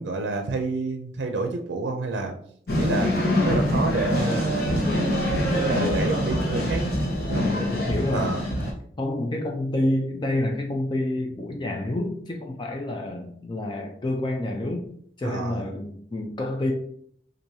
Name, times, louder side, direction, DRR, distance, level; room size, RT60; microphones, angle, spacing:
voice 1, 0.0-2.3 2.8-3.1 3.4-5.0 5.5-6.8 7.3-7.5 8.1-8.4 15.2-15.6, right 3 dB, 85° right, 4 dB, 0.5 m, -28 dB
sound 1, 2.7-8.7, left 1 dB, 60° left, 1.0 m, -24 dB
voice 2, 4.1-4.7 7.4-8.3 9.0-14.8 15.2-16.7, left 1 dB, 25° left, 2 dB, 0.4 m, -28 dB
4.5 x 2.6 x 2.7 m, 0.63 s
head